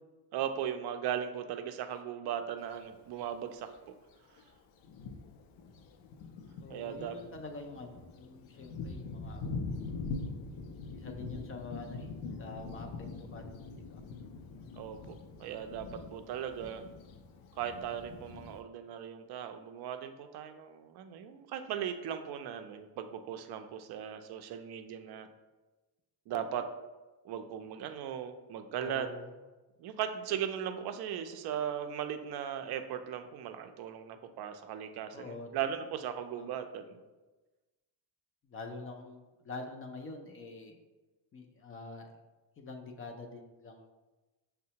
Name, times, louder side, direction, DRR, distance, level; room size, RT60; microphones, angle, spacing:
voice 1, 0.3-3.7 6.7-7.2 14.7-16.8 17.6-25.3 26.3-26.7 27.2-29.1 29.8-37.0, right 9 dB, 55° right, 8 dB, 0.5 m, -38 dB
Thunder, 2.6-2.7 3.7-3.8 4.4-4.5 4.8-18.6, left 3 dB, 75° left, 0.6 m, -43 dB
voice 2, 6.6-9.5 10.9-12.1 12.4-12.9 13.2-13.5 13.9-14.0 28.7-29.3 35.1-35.5 36.4-36.5 38.4-40.8 41.3-42.1 42.6-43.8, left 3 dB, 30° left, 3 dB, 0.3 m, -46 dB
6.2 x 2.1 x 2.8 m, 1.2 s
cardioid pair, 115°, 49 cm